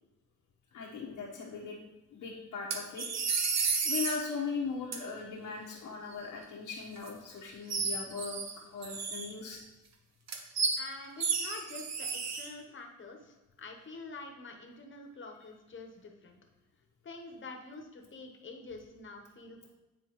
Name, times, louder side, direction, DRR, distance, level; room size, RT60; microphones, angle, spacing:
voice 1, 0.7-1.8 2.1-3.0 3.8-8.5 8.7-9.6, left 5 dB, 90° left, -6 dB, 1.2 m, -39 dB
sound 1, 2.7-4.2 4.9-5.0 7.0-7.1 7.7-8.5 8.8-9.5 10.3-10.8 11.2-12.5, right 5 dB, 55° right, 0.9 m, -32 dB
voice 2, 10.8-16.4 17.0-19.7, left 3 dB, 40° left, 3 dB, 1.1 m, -47 dB
9.1 x 4.4 x 3.1 m, 1.0 s
cardioid pair, 105°, 31 cm